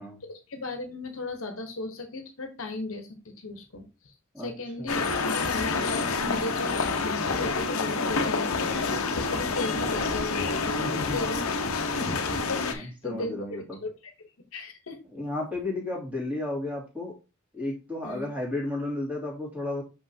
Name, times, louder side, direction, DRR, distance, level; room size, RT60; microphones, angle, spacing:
voice 1, 0.3-11.5 11.8-13.3 13.8-14.1 14.5-15.0 18.0-18.3, left 2 dB, 70° left, 5 dB, 1.2 m, -36 dB
sound 1, 4.9-12.7, left 4 dB, 90° left, 0.9 m, -28 dB
voice 2, 10.8-11.2 12.7-13.8 15.1-17.2 17.5-19.8, left 2 dB, 5° right, -3 dB, 2.8 m, -33 dB
6.3 x 5.6 x 2.8 m, 0.29 s
head